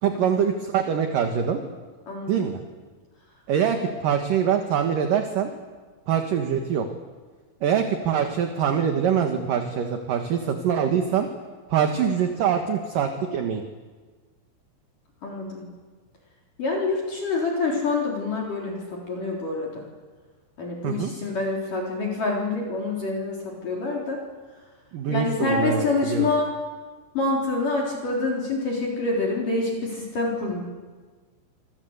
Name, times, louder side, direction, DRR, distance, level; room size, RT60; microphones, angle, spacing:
voice 1, 0.0-1.6 2.3-2.6 3.5-5.5 6.1-6.9 7.6-11.3 11.7-13.6 20.8-21.1 24.9-26.3, right 8 dB, 60° right, 5 dB, 2.6 m, -24 dB
voice 2, 2.1-2.5 15.2-15.7 16.6-19.8 20.6-24.2 25.1-26.5 27.1-30.6, left 3 dB, 45° left, -1 dB, 5.1 m, -26 dB
28.0 x 25.5 x 8.2 m, 1.4 s
omnidirectional pair, 5.5 m